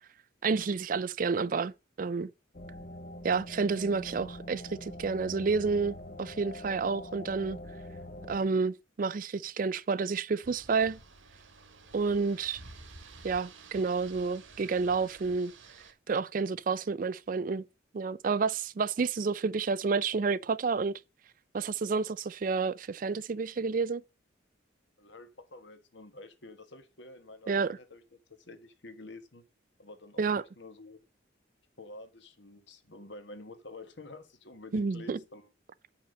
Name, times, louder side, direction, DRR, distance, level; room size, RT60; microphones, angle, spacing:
voice 1, 0.4-2.3 3.2-7.6 8.3-11.0 11.9-12.6 13.2-15.5 16.1-17.7 17.9-21.0 21.5-24.0 27.5-27.8 30.2-30.4 34.7-35.2, right 4 dB, 45° right, 0.4 m, -30 dB
sound 1, 2.5-8.4, left 1 dB, 45° left, 0.9 m, -44 dB
sound 2, 10.4-15.9, right 3 dB, 85° right, 1.8 m, -52 dB
voice 2, 25.0-28.0 28.3-29.4 29.8-31.0 31.8-35.5, left 2 dB, 70° left, 1.4 m, -49 dB
8.7 x 5.8 x 5.3 m
head